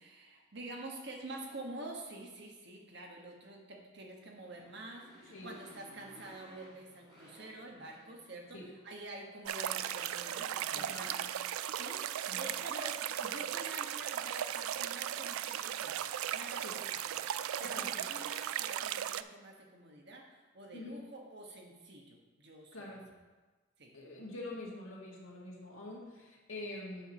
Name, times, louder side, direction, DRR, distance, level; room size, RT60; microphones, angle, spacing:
voice 1, 0.0-11.2 11.8-16.0 16.3-17.2 17.6-23.0 23.8-24.0, right 2 dB, 55° right, 1 dB, 1.3 m, -48 dB
Motorcycle, 4.2-8.8, equal, 25° right, 2.3 m, -58 dB
sound 1, 9.5-19.2, right 10 dB, 90° right, 0.3 m, -37 dB
voice 2, 10.8-11.3 12.3-12.4 16.6-16.8 17.6-18.1 20.7-21.0 22.7-23.0 23.9-27.1, left 2 dB, 75° left, -3 dB, 1.9 m, -45 dB
7.9 x 4.6 x 5.6 m, 1.3 s
head